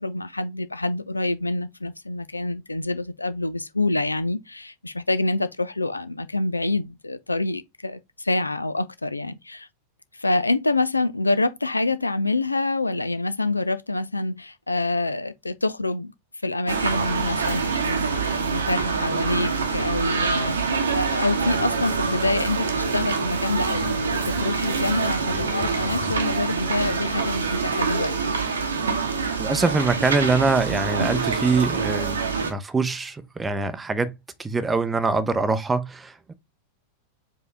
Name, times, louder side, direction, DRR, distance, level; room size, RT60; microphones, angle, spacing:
voice 1, 0.0-9.7 10.1-16.1 16.4-28.4, left 2 dB, 80° left, 0.4 m, -26 dB
sound 1, 16.7-32.5, right 5 dB, 70° right, 0.9 m, -25 dB
sound 2, 21.4-27.7, left 10 dB, 60° left, 0.9 m, -42 dB
voice 2, 29.4-34.1 34.4-36.3, right 4 dB, 15° right, 0.6 m, -24 dB
4.8 x 2.8 x 3.3 m
figure-of-eight pair, 90°, 0 cm